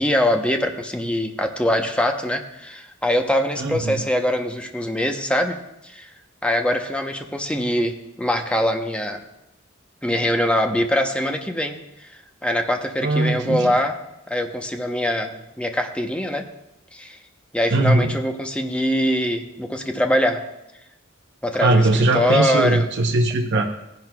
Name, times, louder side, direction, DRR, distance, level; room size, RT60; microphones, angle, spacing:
voice 1, 0.0-5.6 5.8-6.1 6.4-9.2 10.0-12.1 12.4-14.0 14.3-16.5 16.9-17.2 17.5-20.4 21.4-22.9, equal, 5° left, 4 dB, 0.8 m, -23 dB
voice 2, 3.6-4.0 13.0-13.7 17.7-18.2 21.6-23.6, right 2 dB, 60° right, 1 dB, 0.8 m, -20 dB
17.5 x 10.5 x 2.3 m, 0.87 s
head